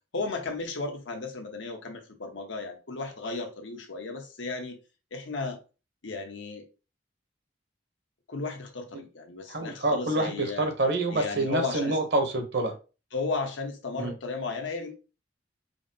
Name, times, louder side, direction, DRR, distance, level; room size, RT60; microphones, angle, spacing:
voice 1, 0.1-4.8 5.1-5.6 6.0-6.6 8.3-10.7 11.1-12.0 13.1-14.9, left 3 dB, 85° left, 1.1 m, -34 dB
voice 2, 9.5-12.7 14.0-14.1, right 2 dB, 60° right, 1.1 m, -27 dB
5.0 x 2.1 x 3.9 m
head